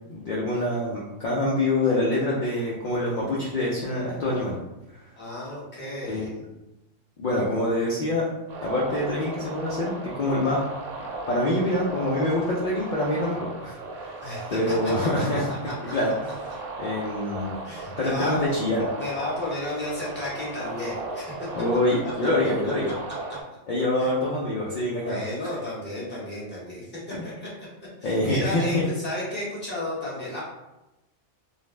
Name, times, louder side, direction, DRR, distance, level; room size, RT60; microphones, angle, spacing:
voice 1, 0.1-4.6 6.1-6.4 7.2-8.2 8.6-10.6 11.3-14.2 14.5-15.5 15.8-17.5 18.0-18.9 21.5-22.9 23.7-25.2 28.0-28.8, left 1 dB, 65° left, -5 dB, 0.4 m, -25 dB
voice 2, 5.2-6.3 14.2-15.2 15.6-15.7 17.6-18.4 19.0-21.5 22.2-22.5 24.0-24.1 25.0-26.9 27.2-27.5 28.0-30.4, left 1 dB, 10° left, -8 dB, 0.8 m, -33 dB
sound 1, 8.5-23.4, right 2 dB, 90° right, 0.9 m, -36 dB
2.5 x 2.0 x 3.2 m, 0.97 s
omnidirectional pair, 1.3 m